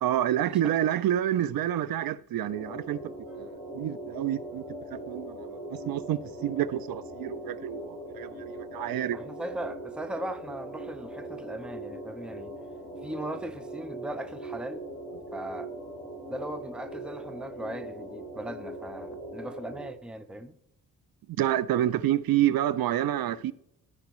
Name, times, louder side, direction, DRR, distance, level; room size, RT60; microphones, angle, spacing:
voice 1, 0.0-3.1 3.4-3.5 3.7-4.6 4.9-9.2 21.4-23.5, right 12 dB, 75° right, 0.5 m, -28 dB
sound 1, 2.5-19.9, right 1 dB, 20° left, 3.5 m, -40 dB
voice 2, 9.1-12.5 13.0-14.9 15.3-15.7 16.3-20.5, right 1 dB, 5° right, 0.5 m, -38 dB
14.0 x 5.1 x 3.1 m
wide cardioid pair, 135°, 36 cm